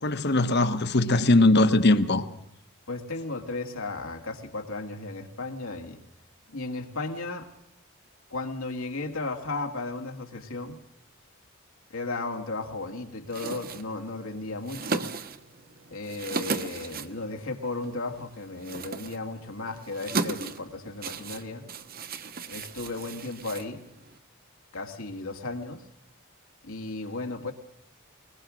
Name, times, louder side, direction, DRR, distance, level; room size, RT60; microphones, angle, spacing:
voice 1, 0.0-2.2, left 2 dB, 50° left, 1.2 m, -20 dB
voice 2, 2.9-6.0 6.5-7.5 8.3-10.8 11.9-15.1 15.9-21.6 22.5-23.8 24.7-25.9 26.6-27.5, left 3 dB, 70° left, 2.1 m, -35 dB
sound 1, 13.3-24.2, right 4 dB, 45° right, 1.1 m, -36 dB
22.5 x 20.5 x 6.3 m
head